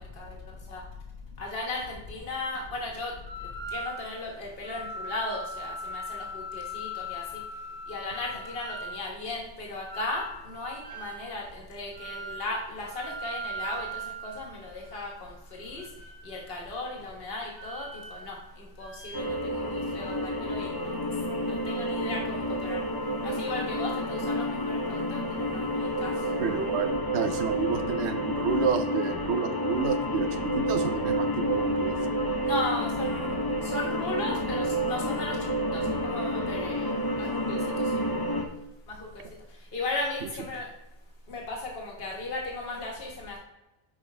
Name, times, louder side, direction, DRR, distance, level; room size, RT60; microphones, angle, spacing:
voice 1, 1.4-3.1 3.7-7.4 7.9-15.8 16.2-20.9 21.4-22.9 23.2-26.1 32.4-33.3 33.6-35.4 35.7-38.0 38.9-39.1 39.7-40.7 41.3-43.4, left 2 dB, 65° left, -1 dB, 1.5 m, -36 dB
sound 1, 3.3-4.2 4.6-9.0 9.9-11.3 11.9-12.5 12.8-15.1 15.7-16.5 17.4-18.5 18.8-19.2, equal, 45° right, 0.9 m, -39 dB
sound 2, 19.1-38.5, equal, 30° left, 0.4 m, -29 dB
voice 2, 26.4-32.0 40.2-40.3, right 6 dB, 85° right, 8 dB, 0.9 m, -30 dB
5.9 x 5.1 x 3.3 m, 0.97 s
omnidirectional pair, 1.1 m